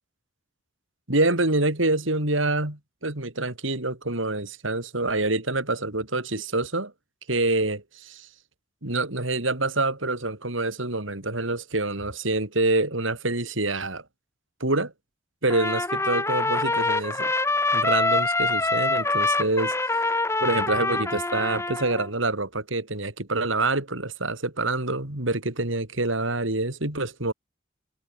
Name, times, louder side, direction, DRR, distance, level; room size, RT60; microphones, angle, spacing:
voice 1, 1.1-6.9 7.3-8.3 8.8-14.0 14.6-14.9 15.4-17.3 17.7-19.7 20.4-27.3, right 2 dB, 80° right, 4.3 m, -26 dB
Trumpet, 15.5-22.1, left 2 dB, 15° left, 3.2 m, -25 dB
head